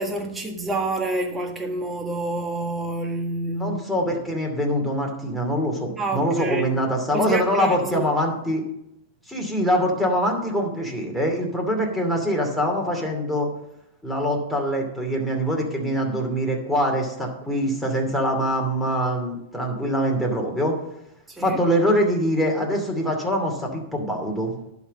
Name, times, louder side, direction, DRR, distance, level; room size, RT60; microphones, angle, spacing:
voice 1, 0.0-4.0 6.0-6.7 7.1-8.1 21.3-21.6, right 2 dB, 15° right, 1.6 m, -28 dB
voice 2, 3.6-8.6 9.3-13.5 14.0-20.7 21.4-24.5, equal, ahead, 2.6 m, -24 dB
11.0 x 4.2 x 7.5 m
hypercardioid pair, 115°, 0 cm